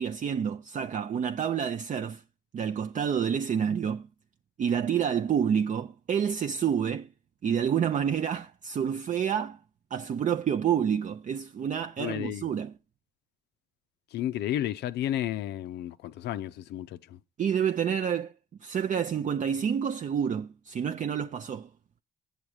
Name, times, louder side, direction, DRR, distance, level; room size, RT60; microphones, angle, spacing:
voice 1, 0.0-2.2 2.5-4.1 4.6-7.1 7.4-9.6 9.9-12.7 17.4-18.3 18.6-21.7, right 8 dB, 45° right, 0.5 m, -28 dB
voice 2, 12.0-12.5 14.1-17.2, left 12 dB, 75° left, 0.4 m, -32 dB
8.0 x 7.2 x 4.8 m
supercardioid pair, 55°, 18 cm